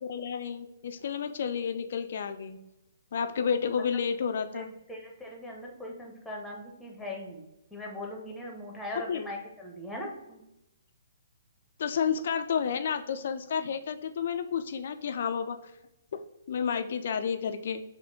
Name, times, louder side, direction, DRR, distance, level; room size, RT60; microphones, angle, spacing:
voice 1, 0.0-2.6 3.1-4.7 9.1-9.3 11.8-15.6 16.1-17.8, left 7 dB, 50° left, 8 dB, 0.4 m, -31 dB
voice 2, 4.5-7.5 7.7-10.4, left 1 dB, 5° left, -1 dB, 1.0 m, -40 dB
6.2 x 2.2 x 3.6 m, 0.90 s
figure-of-eight pair, 125°, 0 cm